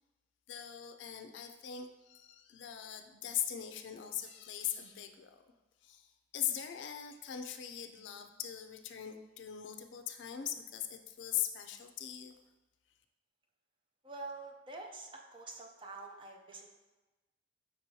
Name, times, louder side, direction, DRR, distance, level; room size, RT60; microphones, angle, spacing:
voice 1, 0.5-5.4 5.8-6.1 6.3-12.3, left 10 dB, 75° left, 7 dB, 0.4 m, -40 dB
voice 2, 14.0-16.8, right 3 dB, 30° right, 2 dB, 0.5 m, -47 dB
5.7 x 3.0 x 2.7 m, 1.1 s
head